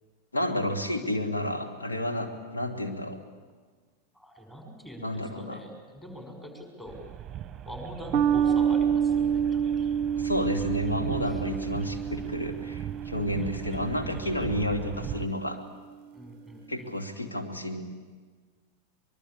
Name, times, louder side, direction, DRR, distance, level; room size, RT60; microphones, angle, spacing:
voice 1, 0.3-3.2 5.0-5.6 10.2-15.6 16.7-17.8, left 1 dB, 80° left, 5 dB, 2.4 m, -31 dB
voice 2, 4.1-7.0 7.6-9.7 11.3-11.4 16.1-16.9, equal, 10° left, 3 dB, 5.8 m, -43 dB
sound 1, 6.9-15.3, right 11 dB, 25° right, 1.0 m, -39 dB
sound 2, 8.1-14.9, right 8 dB, 40° right, 0.6 m, -28 dB
24.0 x 22.0 x 8.6 m, 1.5 s
figure-of-eight pair, 90°, 0 cm